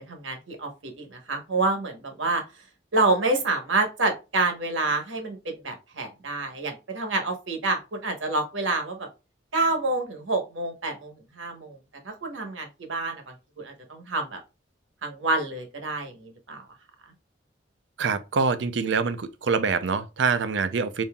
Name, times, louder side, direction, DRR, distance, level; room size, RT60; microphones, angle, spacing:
voice 1, 0.1-2.4 2.9-9.1 9.5-11.8 12.0-13.2 13.6-14.4 15.0-16.6, right 2 dB, 85° right, 1.0 m, -28 dB
voice 2, 18.0-21.0, right 5 dB, 70° right, 0.5 m, -25 dB
5.3 x 2.7 x 2.2 m
head